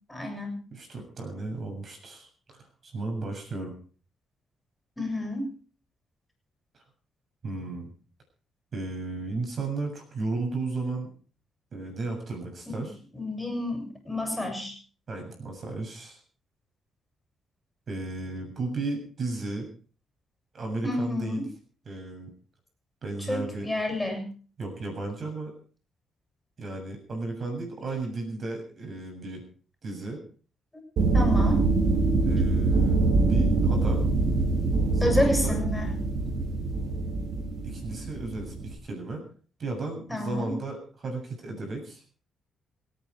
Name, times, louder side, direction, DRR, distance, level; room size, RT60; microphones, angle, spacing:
voice 1, 0.1-0.6 5.0-5.5 12.7-12.8 13.1-14.7 20.8-21.4 23.3-24.3 31.1-31.6 35.0-36.0 40.1-40.5, left 1 dB, 10° left, 4 dB, 7.3 m, -29 dB
voice 2, 0.7-3.7 6.7-6.8 7.4-7.9 8.7-11.1 11.7-13.0 15.1-16.2 17.9-19.7 20.5-21.5 21.9-22.3 23.0-23.7 24.6-25.5 26.6-29.4 29.8-30.2 32.2-34.1 34.9-35.6 37.6-39.2 39.6-42.2, right 3 dB, 50° right, 3 dB, 7.2 m, -34 dB
sound 1, 31.0-38.7, right 3 dB, 65° right, 3.8 m, -24 dB
27.5 x 9.5 x 4.8 m, 0.41 s
cardioid pair, 85°, 0 cm